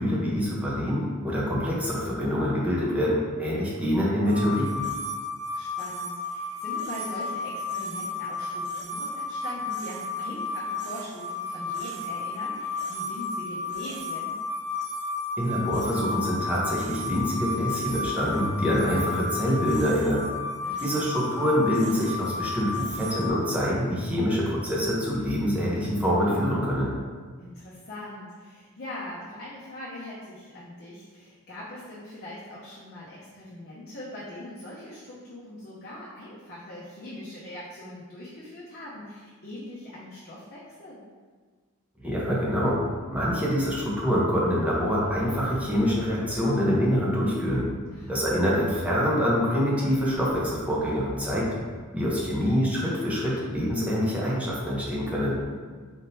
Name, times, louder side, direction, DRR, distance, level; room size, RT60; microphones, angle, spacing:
voice 1, 0.0-4.8 15.4-20.3 20.8-26.9 42.0-42.8 43.1-47.7 48.1-51.5 51.9-55.4, equal, 5° right, -6 dB, 0.8 m, -25 dB
sound 1, 4.3-23.3, left 3 dB, 50° right, 0.6 m, -33 dB
voice 2, 5.5-14.4 20.6-21.1 27.4-41.1 47.9-48.2, left 1 dB, 50° left, -7 dB, 0.7 m, -41 dB
sound 2, 42.6-52.2, equal, 10° left, 1.2 m, -47 dB
4.2 x 3.6 x 2.7 m, 1.5 s
head